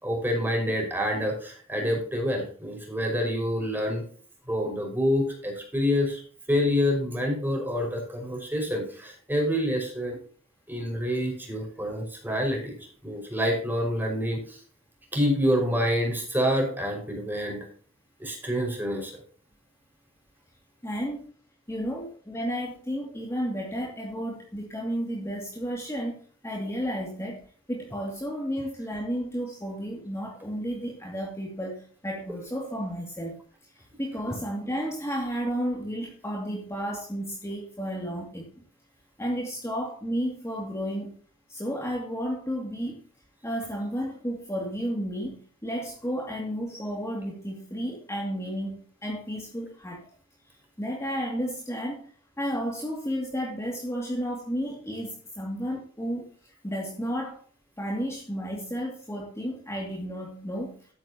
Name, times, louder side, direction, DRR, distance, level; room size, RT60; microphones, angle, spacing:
voice 1, 0.0-4.0 4.5-6.2 6.5-10.2 10.7-12.8 13.0-14.6 15.1-17.6 18.2-19.2, equal, 10° right, 1 dB, 5.4 m, -27 dB
voice 2, 20.8-21.2 21.7-27.4 27.7-33.4 33.7-38.5 39.2-41.1 41.5-43.0 43.4-50.1 50.8-52.1 52.4-57.4 57.8-60.9, equal, 15° left, -1 dB, 2.4 m, -32 dB
13.0 x 10.5 x 2.9 m, 0.44 s
head